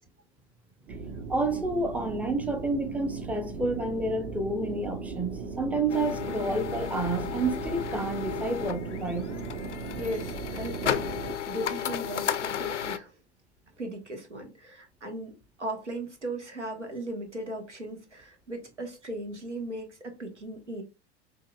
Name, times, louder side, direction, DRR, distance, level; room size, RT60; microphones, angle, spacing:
sound 1, 0.9-11.3, right 4 dB, 45° right, 1.0 m, -38 dB
voice 1, 1.3-5.3 5.6-9.3 9.7-9.8, right 2 dB, 5° right, 0.5 m, -29 dB
sound 2, 5.9-13.0, left 9 dB, 85° left, 0.5 m, -34 dB
voice 2, 9.9-11.1 11.5-13.2 13.8-20.8, right 1 dB, 85° right, 1.1 m, -37 dB
5.3 x 2.5 x 2.2 m
figure-of-eight pair, 85°, 35 cm